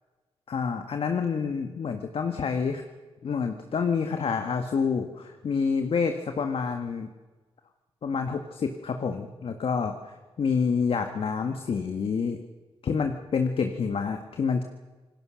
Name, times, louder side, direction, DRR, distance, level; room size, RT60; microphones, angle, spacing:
voice 1, 0.5-2.8 3.2-7.1 8.0-12.4 12.8-14.6, left 5 dB, 60° left, 6 dB, 1.7 m, -28 dB
27.5 x 19.0 x 6.4 m, 1.3 s
cardioid pair, 80°, 11 cm